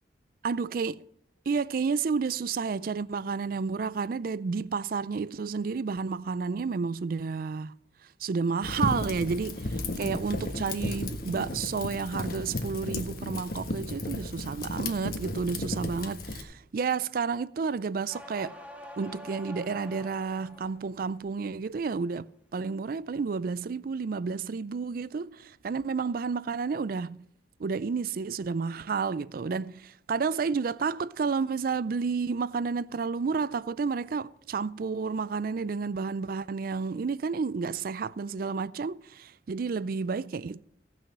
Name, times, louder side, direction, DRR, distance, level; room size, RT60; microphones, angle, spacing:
voice 1, 0.4-1.0 1.5-7.7 8.2-18.5 19.0-27.2 27.6-40.6, right 5 dB, 50° right, 0.4 m, -31 dB
Fire, 8.6-16.4, left 1 dB, 55° left, 1.4 m, -34 dB
Hunting horn - Duo, 18.1-20.8 21.2-21.8, left 1 dB, 10° right, 1.2 m, -45 dB
17.0 x 6.3 x 6.0 m
head